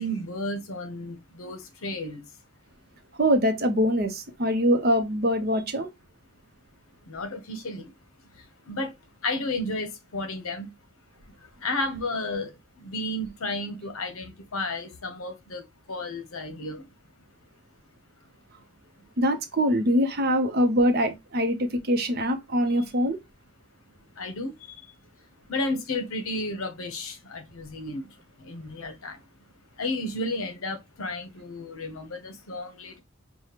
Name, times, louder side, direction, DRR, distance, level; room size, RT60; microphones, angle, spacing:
voice 1, 0.0-2.2 7.1-7.9 8.4-8.9 9.2-10.7 11.4-16.9 24.1-24.9 25.5-29.2 29.8-33.0, left 2 dB, 75° left, 0.8 m, -33 dB
voice 2, 3.2-5.9 19.2-23.2, equal, 45° right, 0.7 m, -23 dB
5.0 x 2.2 x 2.9 m
head